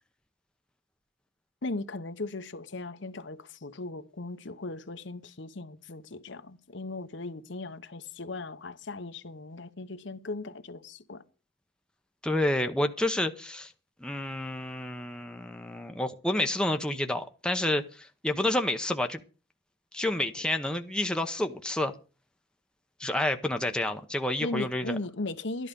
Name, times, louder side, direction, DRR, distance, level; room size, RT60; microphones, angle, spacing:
voice 1, 1.6-11.2 24.4-25.7, left 2 dB, 65° left, 0.9 m, -38 dB
voice 2, 12.2-13.7 14.0-19.2 19.9-21.9 23.0-25.0, left 1 dB, 5° left, 0.8 m, -29 dB
13.0 x 11.0 x 5.3 m
head